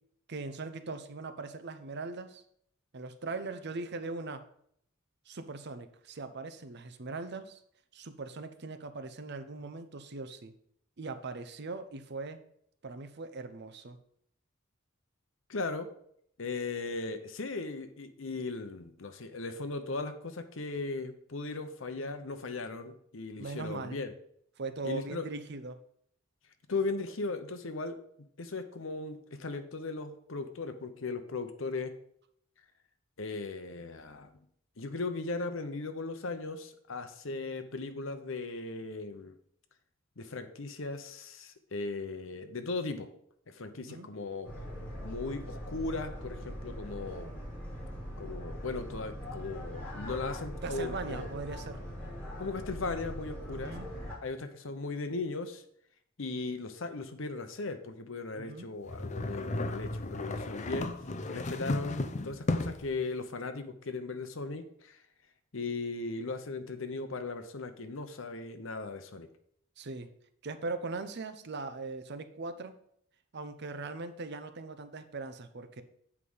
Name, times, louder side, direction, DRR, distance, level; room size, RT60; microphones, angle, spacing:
voice 1, 0.3-2.4 2.9-4.4 5.3-7.6 7.9-10.5 11.0-12.4 12.8-14.0 23.4-24.0 24.6-25.8 43.8-44.1 50.6-51.8 53.5-53.9 58.3-58.7 69.8-70.1 70.4-72.8 73.3-75.8, right 3 dB, 55° right, 10 dB, 0.7 m, -40 dB
voice 2, 15.5-15.9 16.4-24.1 24.8-25.3 26.7-28.0 28.4-31.9 33.2-34.3 34.8-39.4 40.2-43.1 43.5-44.5 45.0-47.4 48.2-51.3 52.4-53.7 54.2-55.6 56.2-60.9 61.3-65.0 65.5-69.3, left 3 dB, 70° left, 9 dB, 0.9 m, -37 dB
sound 1, 44.4-54.1, equal, 5° left, 3.1 m, -41 dB
sound 2, 58.9-62.9, left 2 dB, 35° left, 0.6 m, -34 dB
8.4 x 4.9 x 5.5 m, 0.68 s
head